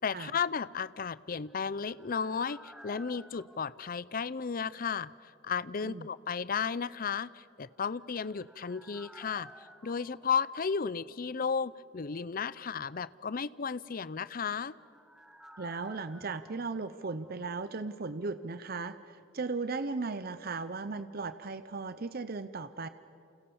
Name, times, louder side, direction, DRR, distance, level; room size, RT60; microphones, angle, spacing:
voice 1, 0.0-14.8, left 6 dB, 45° left, 19 dB, 0.5 m, -34 dB
sound 1, 1.2-5.0 5.3-5.4 7.8-11.5 11.7-11.8 14.1-18.0 18.2-18.3, equal, 5° right, 1.1 m, -56 dB
voice 2, 15.6-22.9, right 4 dB, 50° right, 13 dB, 0.7 m, -37 dB
29.5 x 27.5 x 7.1 m, 2.6 s
head